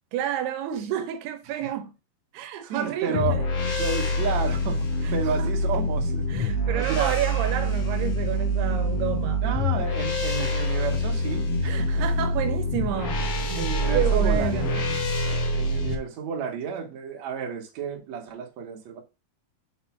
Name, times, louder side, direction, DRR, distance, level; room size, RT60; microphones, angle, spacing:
voice 1, 0.1-1.9 2.3-3.4 5.0-5.5 6.3-9.5 10.4-10.5 11.6-14.7, right 9 dB, 85° right, 2.9 m, -30 dB
voice 2, 2.7-3.4 3.8-7.2 9.4-12.1 13.6-14.8 15.5-19.0, right 6 dB, 55° right, 2.3 m, -31 dB
sound 1, 3.1-16.0, equal, 70° left, 1.4 m, -25 dB
7.0 x 4.0 x 5.8 m
omnidirectional pair, 4.6 m